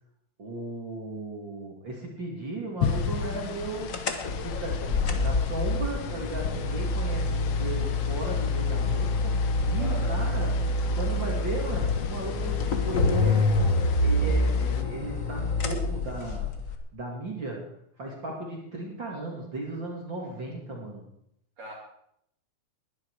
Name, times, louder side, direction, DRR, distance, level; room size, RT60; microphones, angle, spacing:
voice 1, 0.4-4.0 4.4-10.5 10.9-13.5 14.0-16.5 16.9-17.7 18.0-21.0, right 2 dB, 40° right, -1 dB, 3.1 m, -36 dB
sound 1, 2.8-14.8, left 6 dB, 60° left, 1.4 m, -35 dB
sound 2, 3.9-16.7, left 2 dB, 40° left, 1.2 m, -27 dB
voice 2, 9.8-10.2 21.6-21.7, right 1 dB, 55° right, -4 dB, 3.9 m, -39 dB
20.5 x 11.5 x 4.9 m, 0.74 s
omnidirectional pair, 3.6 m